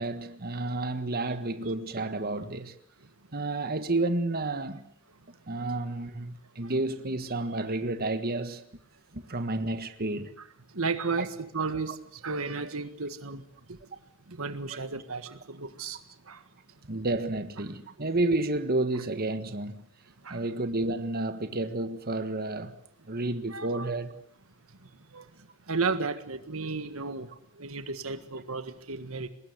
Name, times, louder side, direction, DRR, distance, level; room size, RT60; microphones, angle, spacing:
voice 1, 0.0-2.7 3.3-4.9 5.5-8.7 9.1-10.3 11.2-11.3 14.7-14.8 16.9-19.8 20.3-22.7 23.1-24.1, right 2 dB, 45° right, 1.6 m, -30 dB
voice 2, 10.7-13.8 14.3-16.4 20.2-20.4 23.5-23.9 24.8-29.3, right 4 dB, 75° right, 1.6 m, -34 dB
24.0 x 20.5 x 8.1 m
head